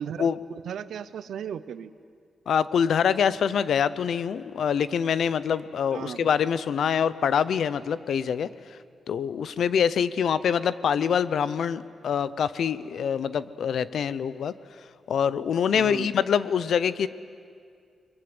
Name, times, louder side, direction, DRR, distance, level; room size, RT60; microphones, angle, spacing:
voice 1, 0.0-1.9 5.9-6.3 15.7-16.1, right 8 dB, 80° right, 14 dB, 0.8 m, -36 dB
voice 2, 2.5-8.5 9.1-14.5 15.1-17.1, left 7 dB, 70° left, 16 dB, 0.7 m, -25 dB
29.5 x 22.0 x 8.0 m, 2.2 s
wide cardioid pair, 145°, 0 cm